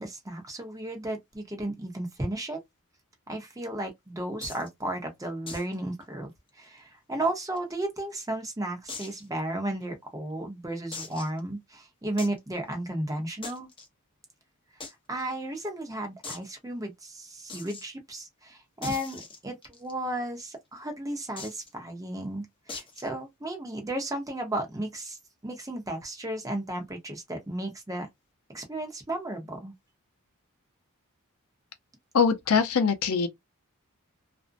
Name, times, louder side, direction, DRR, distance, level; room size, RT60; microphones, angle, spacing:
voice 1, 0.0-2.6 3.3-6.3 6.6-13.7 15.1-25.2 25.4-28.1 28.5-29.7, right 1 dB, 15° right, 0.8 m, -34 dB
sound 1, 4.4-4.7 5.5-5.7 6.0-6.1 6.5-6.6 7.2-8.0 8.9-9.2 9.8-9.9 10.9-11.4 12.2-12.4 13.4-13.9 14.8-14.9 15.2-15.3 15.5-15.6 16.2-16.5 17.5-17.8 18.8-19.9 21.4-21.7 22.7-23.1, left 3 dB, 25° left, 0.7 m, -40 dB
voice 2, 32.1-33.3, left 5 dB, 80° left, 0.5 m, -23 dB
2.5 x 2.1 x 2.4 m
head